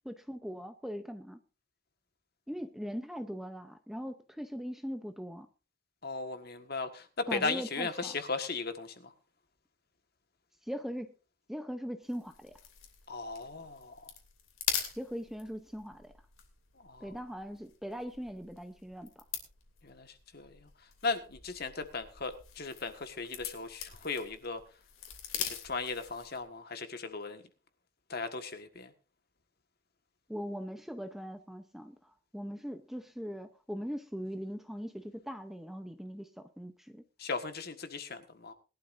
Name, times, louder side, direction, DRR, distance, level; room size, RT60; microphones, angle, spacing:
voice 1, 0.0-1.4 2.5-5.5 7.3-8.1 10.7-11.1 11.5-12.5 15.0-16.1 17.0-19.2 30.3-37.0, equal, ahead, 7 dB, 0.7 m, -40 dB
voice 2, 6.0-9.1 13.1-14.1 16.8-17.1 19.8-20.7 21.0-24.6 25.3-27.4 28.1-28.9 37.2-38.5, left 4 dB, 50° left, 8 dB, 1.6 m, -37 dB
sound 1, 12.1-26.5, left 9 dB, 85° left, 2.9 m, -43 dB
21.0 x 12.0 x 2.6 m, 0.32 s
head